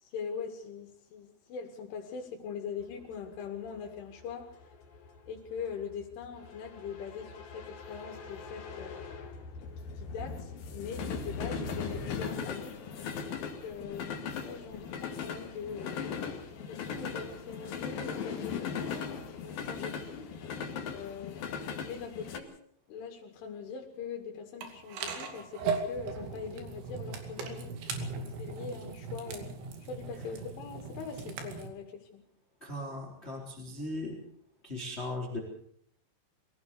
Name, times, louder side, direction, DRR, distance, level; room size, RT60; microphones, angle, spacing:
voice 1, 0.0-4.6 5.3-9.0 9.6-12.8 13.3-14.1 14.4-16.1 16.7-20.3 20.9-21.4 21.8-22.5 22.9-27.7 28.1-29.5 29.9-32.2, left 6 dB, 85° left, 2 dB, 4.8 m, -42 dB
sound 1, 2.9-22.4, left 6 dB, 55° left, 3.5 m, -39 dB
sound 2, 24.6-31.7, right 4 dB, 70° right, 4.8 m, -38 dB
voice 2, 32.6-34.2 34.6-35.4, left 1 dB, 15° left, 0 dB, 3.8 m, -38 dB
23.5 x 17.0 x 7.0 m, 0.64 s
omnidirectional pair, 5.4 m